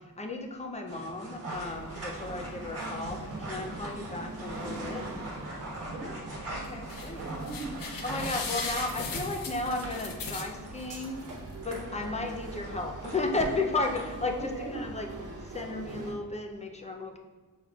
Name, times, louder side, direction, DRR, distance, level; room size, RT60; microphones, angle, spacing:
voice 1, 0.0-5.1 6.5-7.3 8.0-11.3 11.6-15.1 15.4-17.2, left 2 dB, 20° left, 3 dB, 0.4 m, -34 dB
sound 1, 0.9-14.4, right 1 dB, 40° right, 1.3 m, -42 dB
sound 2, 1.5-16.1, right 2 dB, 55° right, 0.8 m, -42 dB
voice 2, 5.9-7.9 14.3-14.9, right 2 dB, 70° right, -3 dB, 1.4 m, -41 dB
sound 3, 6.6-7.1 7.5-10.9 11.3-11.4 11.7-11.8, left 4 dB, 60° left, 0.6 m, -37 dB
6.2 x 3.6 x 2.3 m, 1.4 s
wide cardioid pair, 150°, 38 cm